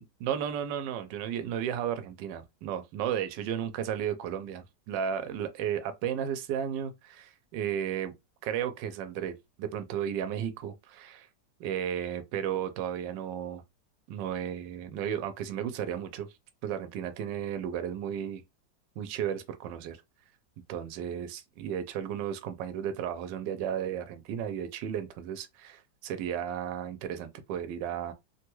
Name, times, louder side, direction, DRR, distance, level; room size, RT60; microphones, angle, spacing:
voice 1, 0.0-8.1 8.4-11.3 11.6-13.6 14.1-16.3 16.6-18.4 19.0-20.0 20.7-28.1, right 9 dB, 80° right, 1.2 m, -34 dB
3.3 x 2.3 x 2.9 m
omnidirectional pair, 1.9 m